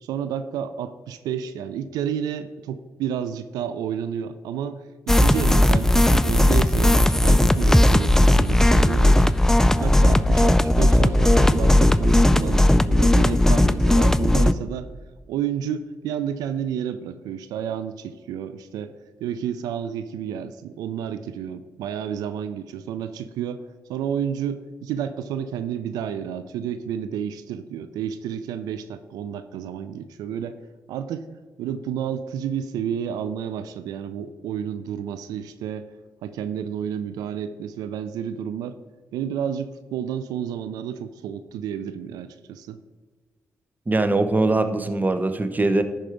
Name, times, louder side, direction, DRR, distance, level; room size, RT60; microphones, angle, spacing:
voice 1, 0.0-9.4 9.8-14.9 15.3-18.9 19.2-23.6 23.9-30.6 30.9-31.3 31.6-35.9 36.2-38.8 39.1-42.8, right 8 dB, 90° right, 11 dB, 0.4 m, -30 dB
sound 1, 5.1-14.5, left 1 dB, 5° left, 0.4 m, -17 dB
voice 2, 43.9-45.8, right 2 dB, 25° right, 9 dB, 0.9 m, -21 dB
10.5 x 4.5 x 5.0 m, 1.4 s
supercardioid pair, 50°, 6 cm